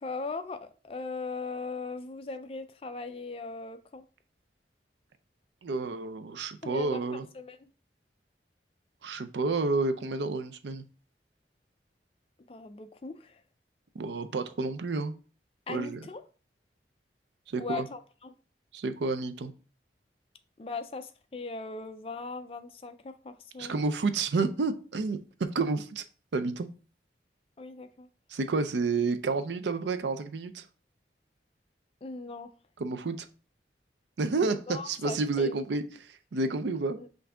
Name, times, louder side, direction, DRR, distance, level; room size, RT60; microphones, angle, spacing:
voice 1, 0.0-4.0 6.6-7.7 12.5-13.4 15.7-16.2 17.6-18.3 20.6-23.8 27.6-28.1 32.0-32.5 34.5-35.6 36.9-37.1, left 3 dB, 35° left, 0.4 m, -39 dB
voice 2, 5.6-7.3 9.0-10.8 13.9-15.1 15.7-16.0 17.5-17.9 18.7-19.5 23.6-25.2 25.5-26.0 26.3-26.7 28.3-30.7 32.8-33.3 34.2-37.0, right 3 dB, 85° right, 0.5 m, -30 dB
5.8 x 2.6 x 3.4 m
head